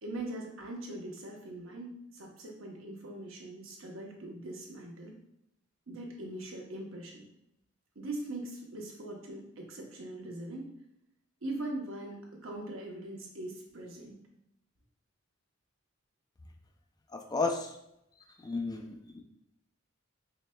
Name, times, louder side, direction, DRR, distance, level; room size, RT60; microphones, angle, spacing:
voice 1, 0.0-5.1 5.9-7.2 7.9-10.6 11.4-14.2, right 1 dB, 80° right, 0 dB, 0.9 m, -41 dB
voice 2, 17.1-17.7 18.4-19.2, left 3 dB, 20° left, 4 dB, 0.4 m, -33 dB
4.8 x 3.3 x 2.2 m, 0.79 s
head